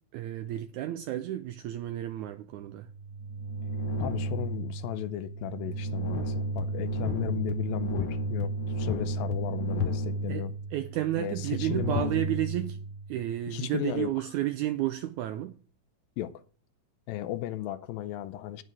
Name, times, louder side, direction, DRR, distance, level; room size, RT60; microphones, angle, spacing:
voice 1, 0.1-2.9 10.3-12.8 13.1-15.6, right 14 dB, 85° right, 1.7 m, -32 dB
sound 1, 2.7-13.3, right 1 dB, 50° left, 1.5 m, -33 dB
voice 2, 4.0-10.5 11.2-12.2 13.5-14.3 16.2-16.4 17.1-18.6, left 13 dB, 85° left, 2.5 m, -35 dB
9.1 x 7.8 x 6.1 m
omnidirectional pair, 4.1 m